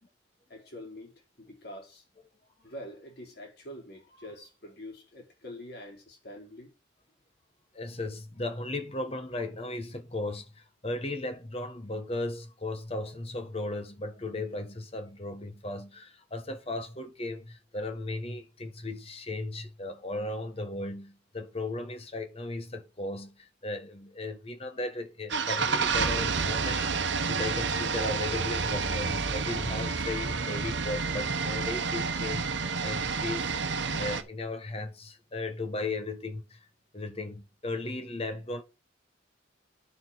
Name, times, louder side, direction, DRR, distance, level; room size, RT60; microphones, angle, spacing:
voice 1, 0.5-1.1 1.4-2.0 2.6-6.7, left 1 dB, 55° left, 4.3 m, -45 dB
voice 2, 7.7-36.7 36.9-38.6, left 2 dB, 30° left, 1.3 m, -36 dB
sound 1, 25.3-34.2, right 5 dB, 65° right, 1.0 m, -29 dB
9.6 x 7.1 x 4.1 m
head